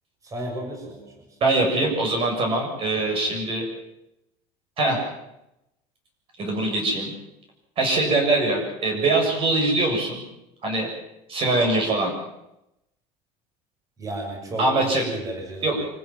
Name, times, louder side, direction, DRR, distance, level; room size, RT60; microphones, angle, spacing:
voice 1, 0.2-1.1 3.0-3.2 14.0-15.9, right 1 dB, 20° right, 0 dB, 6.8 m, -34 dB
voice 2, 1.4-3.6 4.8-5.0 6.4-7.1 7.8-10.2 10.6-10.9 11.3-12.1 14.6-15.0 15.6-15.8, right 2 dB, 35° right, 2 dB, 7.3 m, -22 dB
27.0 x 15.0 x 7.7 m, 0.87 s
cardioid pair, 150°, 15 cm